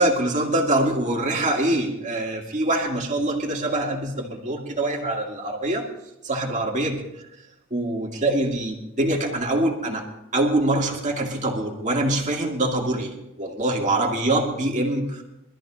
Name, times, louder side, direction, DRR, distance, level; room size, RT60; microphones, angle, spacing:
voice 1, 0.0-5.9 6.2-7.0 7.7-10.1 10.3-13.1 13.4-15.2, right 1 dB, 35° right, 0 dB, 2.2 m, -24 dB
24.0 x 13.5 x 2.5 m, 0.89 s
head